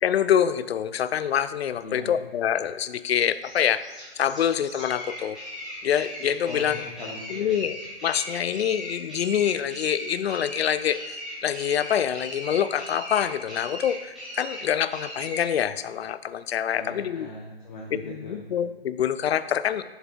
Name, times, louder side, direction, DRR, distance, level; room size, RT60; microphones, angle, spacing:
voice 1, 0.0-3.8 4.2-5.4 5.8-6.8 7.3-7.8 8.0-17.3 18.1-19.8, left 9 dB, 75° left, 14 dB, 0.5 m, -26 dB
sound 1, 3.1-15.5, equal, ahead, 1.4 m, -38 dB
voice 2, 6.5-7.6 16.7-18.4, left 2 dB, 45° left, -2 dB, 1.0 m, -39 dB
7.2 x 7.0 x 2.5 m, 1.2 s
hypercardioid pair, 165°, 31 cm